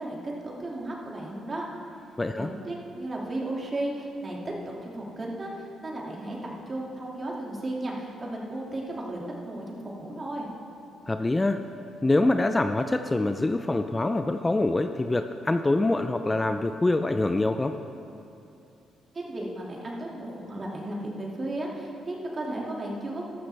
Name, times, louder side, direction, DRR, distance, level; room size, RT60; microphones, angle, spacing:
voice 1, 0.0-1.7 2.3-4.4 4.7-10.5 19.1-23.3, right 1 dB, 35° right, -2 dB, 2.3 m, -34 dB
voice 2, 2.2-2.5 11.1-11.6 12.0-17.8, left 2 dB, 20° left, 8 dB, 0.4 m, -25 dB
13.5 x 13.0 x 3.4 m, 2.7 s
cardioid pair, 90°, 0 cm